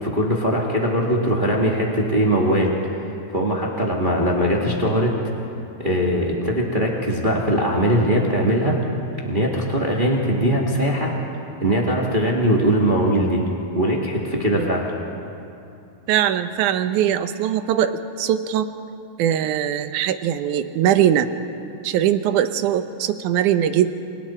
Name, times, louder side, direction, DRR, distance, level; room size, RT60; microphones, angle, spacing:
voice 1, 0.0-2.7 3.3-5.2 5.8-8.8 9.2-11.1 11.6-13.4 13.7-14.9, equal, 20° right, -2 dB, 1.6 m, -20 dB
voice 2, 16.1-18.7 19.2-21.3 21.8-24.0, right 10 dB, 80° right, 10 dB, 2.3 m, -21 dB
29.0 x 25.5 x 4.4 m, 2.7 s
omnidirectional pair, 3.5 m